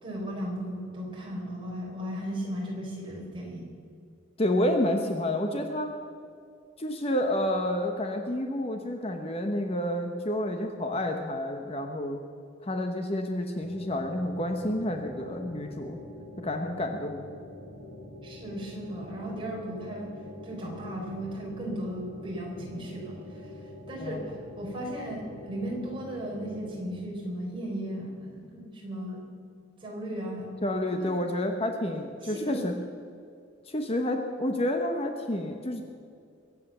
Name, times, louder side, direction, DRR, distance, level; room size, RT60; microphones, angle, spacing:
voice 1, 0.0-3.7 18.2-20.1 20.4-23.5 23.9-29.3 29.8-30.5 30.9-31.2 32.2-32.6, equal, 25° right, -3 dB, 4.4 m, -36 dB
voice 2, 4.4-5.9 6.8-12.2 12.6-16.0 16.4-17.2 24.0-24.2 30.6-32.7 33.7-35.8, left 1 dB, 30° left, 4 dB, 1.0 m, -29 dB
sound 1, 13.6-26.8, left 1 dB, 75° left, 4.6 m, -45 dB
22.5 x 8.5 x 6.8 m, 2.3 s
head